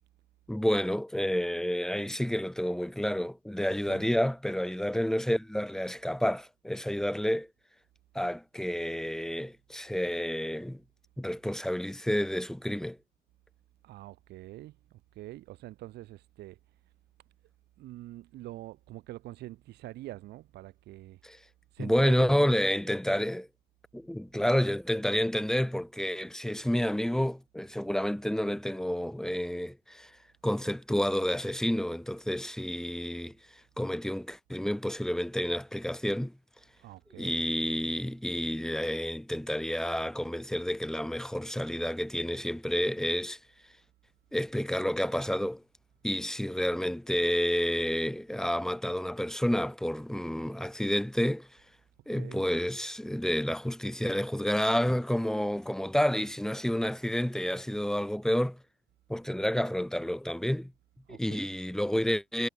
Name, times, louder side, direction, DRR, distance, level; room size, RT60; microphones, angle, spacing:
voice 1, 0.5-7.5 8.1-10.8 11.2-13.0 21.2-21.4 21.8-23.5 23.9-30.1 30.4-33.3 33.8-36.3 37.2-43.4 44.3-45.6 46.0-51.5 52.1-58.6 59.1-60.7 61.1-62.5, equal, 5° left, 4.0 m, -29 dB
voice 2, 13.8-16.6 17.8-21.2 21.7-22.7 36.8-37.4 52.1-52.5 61.1-61.6, right 16 dB, 80° right, 7.4 m, -45 dB
cardioid pair, 110°, 17 cm